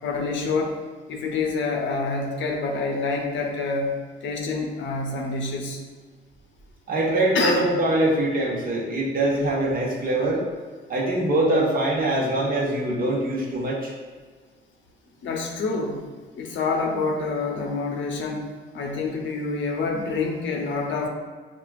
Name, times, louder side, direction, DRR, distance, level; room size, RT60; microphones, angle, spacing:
voice 1, 0.0-0.8 1.1-5.8 7.3-7.8 15.2-16.1 16.4-18.5 18.7-21.1, left 3 dB, 70° left, 1 dB, 0.7 m, -27 dB
voice 2, 6.9-10.4 10.9-13.9, right 1 dB, 45° right, -4 dB, 1.1 m, -23 dB
5.7 x 2.4 x 2.4 m, 1.5 s
cardioid pair, 90°, 20 cm